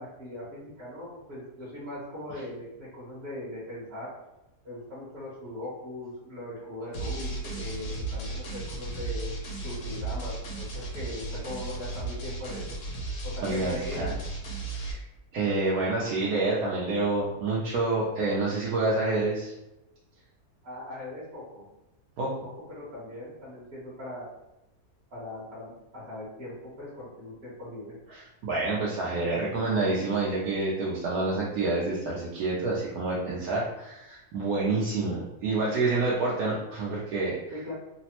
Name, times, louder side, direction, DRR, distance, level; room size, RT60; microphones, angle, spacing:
voice 1, 0.0-4.1 4.6-9.3 9.6-12.7 13.2-14.2 20.6-21.6 22.4-24.2 25.1-28.0 37.5-37.7, left 1 dB, 45° right, -9 dB, 1.1 m, -40 dB
sound 1, 6.9-14.9, right 2 dB, 85° left, 1.2 m, -35 dB
voice 2, 13.4-14.1 14.7-15.0 15.3-19.5 22.2-22.3 28.1-37.4, right 3 dB, 75° right, -6 dB, 1.1 m, -28 dB
3.2 x 2.0 x 2.9 m, 0.92 s
omnidirectional pair, 1.7 m